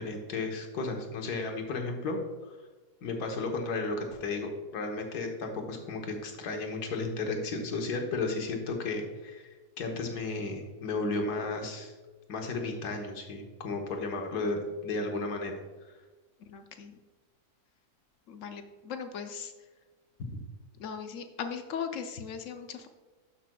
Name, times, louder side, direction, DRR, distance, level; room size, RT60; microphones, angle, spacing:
voice 1, 0.0-2.2 3.0-11.9 12.3-15.5 20.2-20.3, left 3 dB, 80° left, 3 dB, 1.6 m, -34 dB
voice 2, 16.4-17.0 18.3-19.5 20.8-22.9, left 7 dB, 65° left, 7 dB, 0.8 m, -38 dB
12.0 x 5.9 x 2.2 m, 1.2 s
omnidirectional pair, 1.7 m